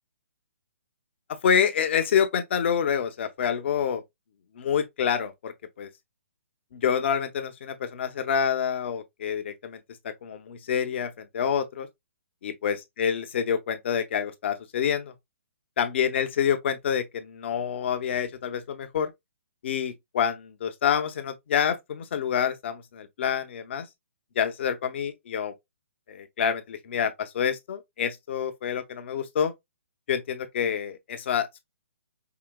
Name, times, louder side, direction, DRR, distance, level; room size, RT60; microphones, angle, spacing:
voice 1, 1.4-4.0 4.6-5.9 6.7-9.8 10.0-11.9 12.4-15.1 15.8-19.1 19.6-23.9 24.4-25.5 26.1-29.5 30.1-31.6, left 8 dB, 55° left, 0.9 m, -27 dB
4.9 x 2.8 x 2.3 m
hypercardioid pair, 140°, 7 cm